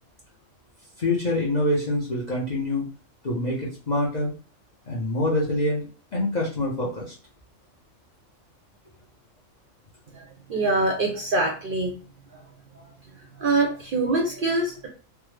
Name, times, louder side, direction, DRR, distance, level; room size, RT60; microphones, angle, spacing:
voice 1, 1.0-2.9 3.2-4.3 4.9-7.1, left 1 dB, 45° left, -4 dB, 0.6 m, -25 dB
voice 2, 10.1-11.9 13.4-14.9, right 2 dB, 55° right, 0 dB, 0.6 m, -24 dB
3.3 x 2.0 x 3.1 m, 0.36 s
omnidirectional pair, 1.4 m